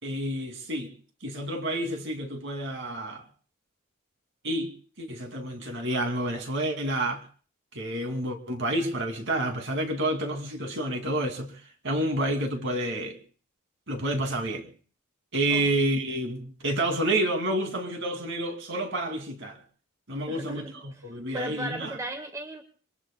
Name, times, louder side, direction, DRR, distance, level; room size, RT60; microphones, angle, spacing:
voice 1, 0.0-0.9 1.2-3.2 4.4-7.2 7.7-13.2 13.9-14.7 15.3-19.6 20.1-22.0, right 1 dB, 60° right, 2.5 m, -29 dB
voice 2, 20.3-22.6, right 1 dB, 15° right, 1.0 m, -37 dB
26.5 x 23.5 x 2.2 m
head